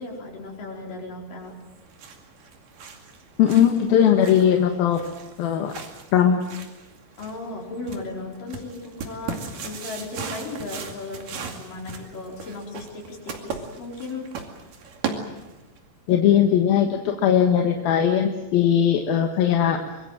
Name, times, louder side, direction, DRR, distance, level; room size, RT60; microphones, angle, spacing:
voice 1, 0.0-1.5 7.2-14.3, left 3 dB, 55° left, -1 dB, 6.4 m, -36 dB
sound 1, 1.6-15.8, right 5 dB, 55° right, 3.7 m, -38 dB
voice 2, 3.4-5.0 5.4-5.7 6.1-6.4 16.1-19.8, left 9 dB, 70° left, 3 dB, 3.1 m, -19 dB
25.5 x 22.5 x 7.6 m, 1.0 s
omnidirectional pair, 4.8 m